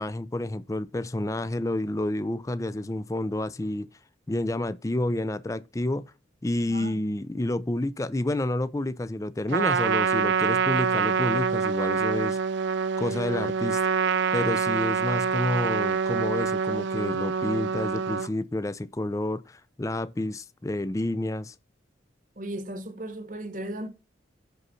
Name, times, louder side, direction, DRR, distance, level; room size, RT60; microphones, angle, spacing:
voice 1, 0.0-3.9 4.3-6.0 6.4-12.4 13.0-13.8 14.3-21.5, left 1 dB, 15° left, 0.4 m, -29 dB
Trumpet, 9.5-18.3, right 6 dB, 70° right, 0.4 m, -26 dB
voice 2, 22.4-23.9, right 1 dB, 45° right, 1.0 m, -36 dB
6.2 x 5.3 x 5.6 m
head